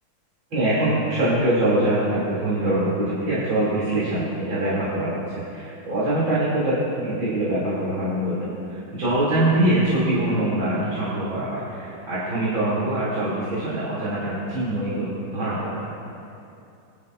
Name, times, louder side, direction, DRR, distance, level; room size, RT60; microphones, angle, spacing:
voice 1, 0.5-15.8, right 1 dB, 60° right, -10 dB, 3.6 m, -24 dB
24.5 x 11.0 x 2.5 m, 2.6 s
omnidirectional pair, 2.4 m